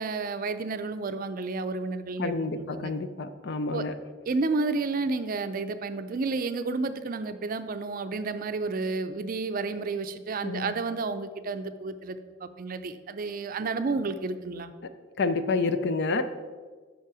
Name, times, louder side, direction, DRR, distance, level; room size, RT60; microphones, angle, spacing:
voice 1, 0.0-2.9 3.7-3.8 4.3-14.7, right 3 dB, 45° right, 10 dB, 0.4 m, -31 dB
voice 2, 2.2-4.0 10.4-10.7 15.2-16.2, left 3 dB, 60° left, 11 dB, 0.5 m, -28 dB
7.4 x 5.7 x 4.8 m, 1.5 s
head